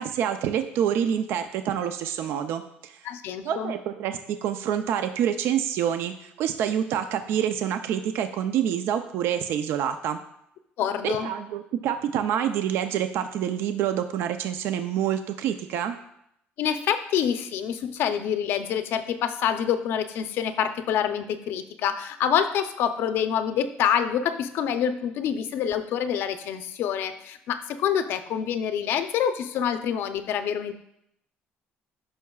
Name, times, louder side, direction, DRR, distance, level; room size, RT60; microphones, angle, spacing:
voice 1, 0.0-3.0 3.4-10.2 11.0-16.0, right 9 dB, 70° right, 8 dB, 0.5 m, -27 dB
voice 2, 3.0-3.7 10.8-11.3 16.6-30.7, left 8 dB, 70° left, 9 dB, 0.6 m, -26 dB
13.0 x 5.6 x 2.3 m, 0.74 s
cardioid pair, 140°, 4 cm